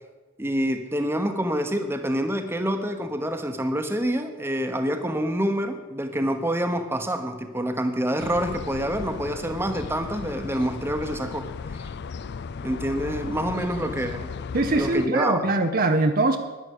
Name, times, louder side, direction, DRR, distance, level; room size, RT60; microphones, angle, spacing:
voice 1, 0.4-11.9 12.6-14.3 14.7-15.5, equal, 10° right, 7 dB, 1.0 m, -27 dB
sound 1, 8.2-15.1, left 5 dB, 50° left, 0.4 m, -36 dB
voice 2, 14.5-16.4, right 2 dB, 40° right, 6 dB, 0.7 m, -22 dB
11.0 x 10.5 x 8.3 m, 1.2 s
head